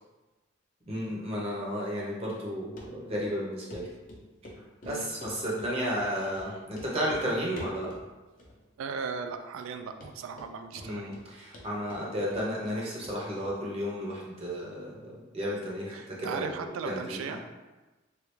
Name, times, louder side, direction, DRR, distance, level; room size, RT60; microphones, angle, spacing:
voice 1, 0.9-3.9 4.8-7.9 10.8-17.4, equal, 30° right, -4 dB, 0.7 m, -33 dB
Run, 2.8-2.9 3.2-3.3 3.7-3.8 4.1-4.6 4.8-5.7 6.0-6.1 6.4-6.5 6.7-7.3 7.6-8.1 8.4-8.8 9.1-9.2 9.7-9.8 10.0-10.5 10.8-11.3 11.5-12.8 13.0-13.2 13.4-13.5, left 1 dB, 40° left, 0.5 m, -45 dB
voice 2, 8.8-11.1 15.9-17.4, right 5 dB, 80° right, 8 dB, 0.3 m, -37 dB
3.2 x 2.4 x 3.0 m, 1.1 s
head